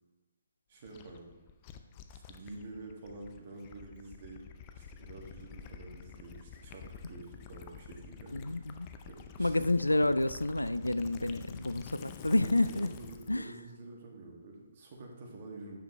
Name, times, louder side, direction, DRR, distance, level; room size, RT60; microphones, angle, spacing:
voice 1, 0.7-1.4 2.1-4.4 4.7-8.6 9.1-9.7 12.4-15.8, right 2 dB, 45° right, 0 dB, 1.9 m, -48 dB
Gurgling / Liquid, 0.8-13.4, left 7 dB, 30° left, 0.6 m, -49 dB
voice 2, 8.3-8.9 9.4-12.9 13.3-13.5, left 2 dB, 90° left, 14 dB, 0.3 m, -29 dB
9.2 x 6.6 x 3.2 m, 1.2 s
figure-of-eight pair, 135°, 0 cm